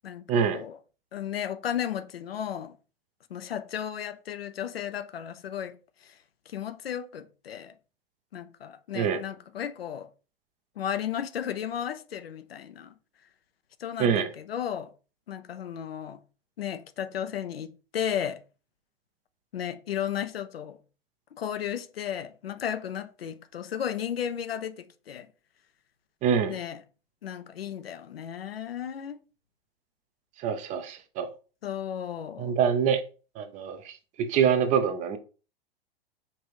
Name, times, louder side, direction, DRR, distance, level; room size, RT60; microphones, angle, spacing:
voice 1, 0.3-0.6 8.9-9.2 14.0-14.3 26.2-26.6 30.4-31.3 32.4-33.0 33.4-35.2, right 7 dB, 25° right, 0.5 m, -25 dB
voice 2, 1.1-2.8 3.3-6.2 6.5-7.7 8.3-10.1 10.8-12.9 13.8-14.9 15.3-16.2 16.6-18.4 19.5-20.8 21.3-25.3 26.5-26.8 27.2-29.2 31.6-32.6, left 9 dB, 80° left, 0.5 m, -34 dB
5.3 x 2.6 x 3.0 m
figure-of-eight pair, 100°, 29 cm